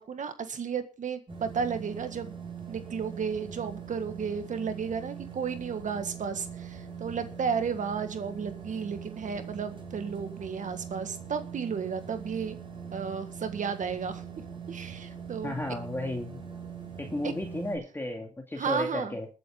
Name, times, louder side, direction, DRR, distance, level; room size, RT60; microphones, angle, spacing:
voice 1, 0.0-2.3 2.7-12.6 12.9-14.2 14.7-15.5 17.2-17.3 18.6-19.2, right 6 dB, 65° right, 9 dB, 1.7 m, -33 dB
sound 1, 1.3-17.8, right 7 dB, 35° right, 5.2 m, -42 dB
voice 2, 15.4-16.4 17.0-19.3, left 1 dB, 15° left, 2 dB, 2.2 m, -33 dB
21.0 x 8.0 x 3.8 m, 0.34 s
cardioid pair, 85°, 14 cm